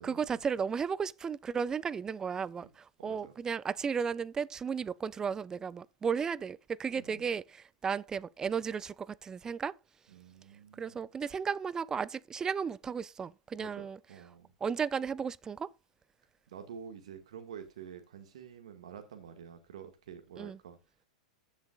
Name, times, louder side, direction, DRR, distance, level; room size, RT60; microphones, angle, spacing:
voice 1, 0.0-9.8 10.7-14.0 14.6-15.7 20.4-20.6, right 6 dB, 20° right, 0.5 m, -34 dB
voice 2, 3.0-3.3 6.9-7.2 10.1-11.0 13.6-14.5 16.5-20.8, right 8 dB, 65° right, 1.9 m, -48 dB
15.0 x 7.5 x 2.4 m
figure-of-eight pair, 100°, 4 cm